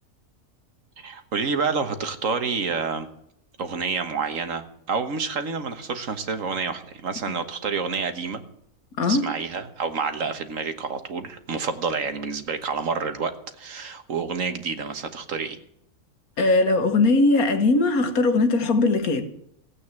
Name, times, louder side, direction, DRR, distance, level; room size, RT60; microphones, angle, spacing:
voice 1, 1.0-3.1 3.6-8.4 9.0-13.3 13.6-15.6, right 5 dB, 65° right, 1.6 m, -28 dB
voice 2, 9.0-9.3 16.4-19.3, left 3 dB, 80° left, 1.8 m, -20 dB
16.0 x 8.6 x 7.2 m
omnidirectional pair, 1.5 m